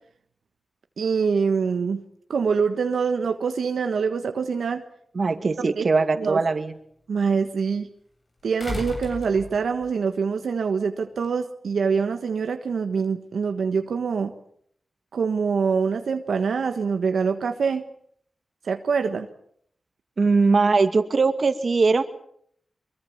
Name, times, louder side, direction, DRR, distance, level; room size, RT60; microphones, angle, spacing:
voice 1, 1.0-2.0 2.3-4.8 5.8-5.9 6.2-6.4 7.1-7.9 8.4-14.3 15.1-17.8 18.6-19.3, right 5 dB, 85° right, 6 dB, 1.4 m, -24 dB
voice 2, 5.1-6.7 20.2-22.0, right 4 dB, 55° right, 8 dB, 2.3 m, -20 dB
sound 1, 5.3-5.4 8.6-9.9 11.2-11.3, left 2 dB, 50° left, 7.8 m, -34 dB
24.0 x 23.0 x 7.3 m, 0.67 s
wide cardioid pair, 80°, 0 cm